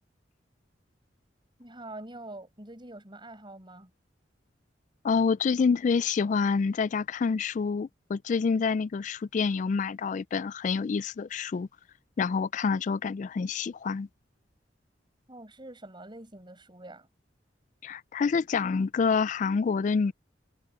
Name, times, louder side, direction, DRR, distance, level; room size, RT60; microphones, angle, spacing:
voice 1, 1.6-3.9 15.3-17.1, right 1 dB, 25° right, 5.6 m, -45 dB
voice 2, 5.0-11.7 12.2-14.1 17.8-20.1, left 5 dB, 40° left, 0.3 m, -27 dB
head